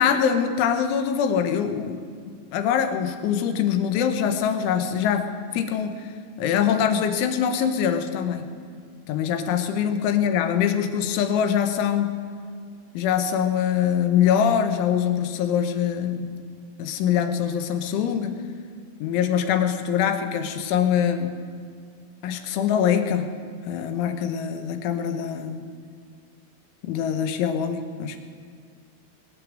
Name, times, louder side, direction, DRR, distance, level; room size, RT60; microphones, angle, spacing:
voice 1, 0.0-2.0 2.5-5.3 5.5-6.1 6.4-8.4 9.1-12.2 13.0-16.4 16.8-18.4 19.0-21.3 22.2-23.3 23.7-25.6 26.8-28.2, left 8 dB, 85° left, 8 dB, 3.5 m, -23 dB
21.0 x 8.7 x 7.6 m, 2.1 s
omnidirectional pair, 5.5 m